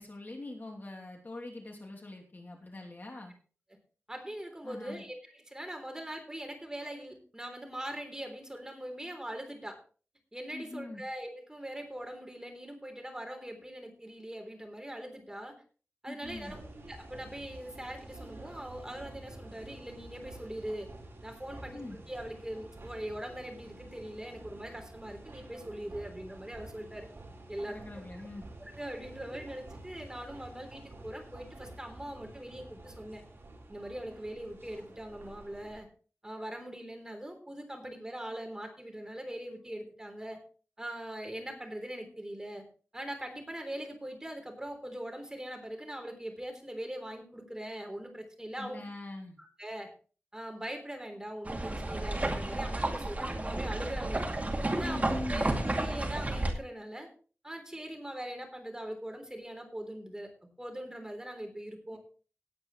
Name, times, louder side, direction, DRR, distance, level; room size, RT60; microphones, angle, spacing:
voice 1, 0.0-3.3 4.6-5.0 10.5-11.0 16.1-16.6 21.7-22.0 27.7-28.5 48.6-49.4 54.8-55.5 61.9-62.0, left 2 dB, 45° left, 0 dB, 2.8 m, -42 dB
voice 2, 4.1-9.8 10.3-15.6 16.0-20.9 21.2-21.8 22.1-27.1 27.5-27.8 28.7-33.2 33.7-35.9 36.2-40.4 40.8-42.6 42.9-48.8 49.4-49.9 50.3-54.2 54.7-55.0 55.3-57.1 57.4-60.3 60.6-62.0, right 1 dB, 15° right, 4 dB, 3.5 m, -41 dB
sound 1, 16.2-35.8, right 2 dB, 60° right, 4.2 m, -50 dB
sound 2, 51.5-56.5, right 2 dB, 35° right, 2.2 m, -32 dB
18.0 x 8.9 x 3.2 m, 0.38 s
wide cardioid pair, 80°, 5 cm